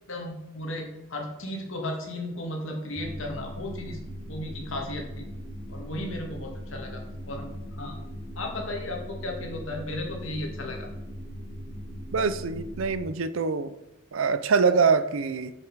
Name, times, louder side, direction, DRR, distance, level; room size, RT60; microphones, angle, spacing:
voice 1, 0.1-4.0 4.3-5.2 5.7-8.0 8.4-10.9, left 1 dB, 70° left, 1 dB, 1.9 m, -35 dB
sound 1, 3.0-13.0, equal, 30° left, 1.8 m, -39 dB
voice 2, 12.1-13.7 14.1-15.5, right 5 dB, 75° right, 12 dB, 0.5 m, -24 dB
7.3 x 6.6 x 4.6 m, 0.95 s
head